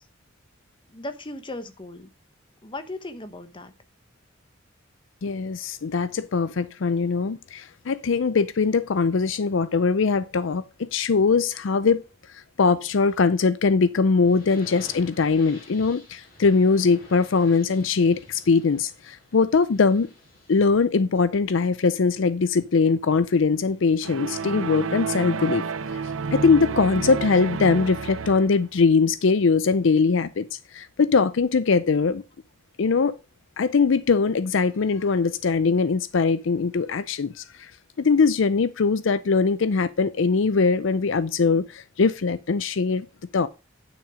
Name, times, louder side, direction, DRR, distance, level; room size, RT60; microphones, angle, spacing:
voice 1, 0.9-2.1 2.6-3.7, left 2 dB, 25° left, 1.1 m, -37 dB
voice 2, 5.2-12.0 12.3-20.1 20.5-25.6 26.3-32.2 32.8-33.2 33.6-37.7 38.0-43.1 43.3-43.5, left 4 dB, 65° left, 0.5 m, -21 dB
sound 1, 14.2-20.9, left 1 dB, 45° left, 5.7 m, -48 dB
sound 2, 24.0-28.7, right 5 dB, 85° right, 0.6 m, -30 dB
10.0 x 6.1 x 4.9 m
head